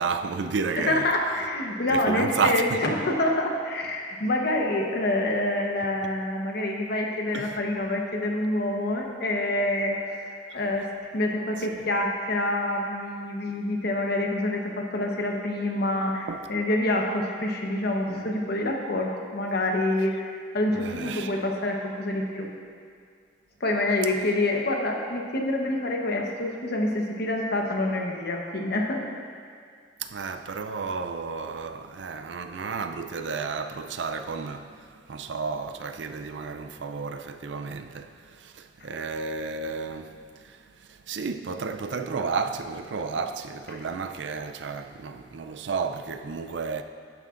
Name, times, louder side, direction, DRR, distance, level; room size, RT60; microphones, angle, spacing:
voice 1, 0.0-1.1 1.9-2.8 7.3-7.6 10.5-10.6 16.3-16.4 20.7-21.4 30.0-40.1 40.4-46.8, right 5 dB, 70° right, 0.5 m, -32 dB
voice 2, 0.8-22.5 23.6-29.0 43.7-43.8, left 1 dB, 60° left, 1.0 m, -27 dB
11.5 x 9.3 x 2.5 m
head